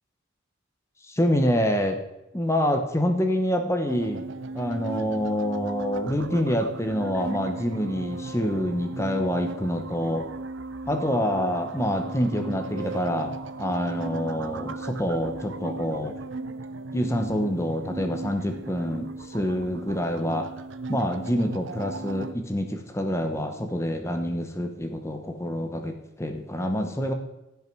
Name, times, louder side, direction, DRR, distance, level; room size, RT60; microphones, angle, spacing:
voice 1, 1.1-2.0 2.3-4.3 4.5-10.3 10.9-13.3 13.6-16.1 16.9-20.5 20.9-27.1, equal, 15° left, 5 dB, 0.9 m, -26 dB
sound 1, 3.9-22.3, right 3 dB, 65° right, 0.6 m, -36 dB
15.5 x 5.8 x 4.6 m, 0.92 s
head